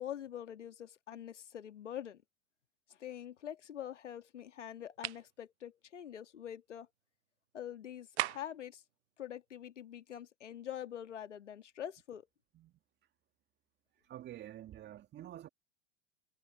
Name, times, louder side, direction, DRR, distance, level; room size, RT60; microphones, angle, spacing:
voice 1, 0.0-2.2 2.9-6.9 7.5-8.8 9.2-12.3, left 10 dB, 75° left, 1.8 m, -45 dB
Dropping record on concrete floor, 5.0-5.3 8.2-8.6, right 15 dB, 60° right, 0.6 m, -36 dB
voice 2, 13.9-15.5, right 12 dB, 30° right, 2.0 m, -48 dB
figure-of-eight pair, 90°, 36 cm